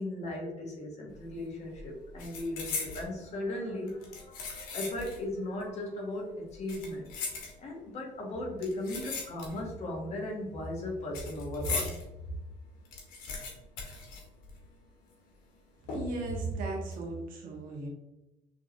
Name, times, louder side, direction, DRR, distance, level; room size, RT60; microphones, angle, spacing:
voice 1, 0.0-7.1 7.6-12.0, left 1 dB, 50° left, -1 dB, 1.5 m, -37 dB
sound 1, 1.1-1.4 1.7-3.1 3.9-5.3 5.6-5.7 6.5-7.9 8.6-9.8 10.1-12.0 12.4-12.5 12.7-14.8 15.1-15.2 15.9-16.3 16.7-16.9, left 4 dB, 85° left, 1.5 m, -39 dB
voice 2, 15.9-17.9, right 2 dB, 75° right, -1 dB, 1.4 m, -35 dB
5.8 x 3.3 x 2.6 m, 0.95 s
cardioid pair, 115°, 15 cm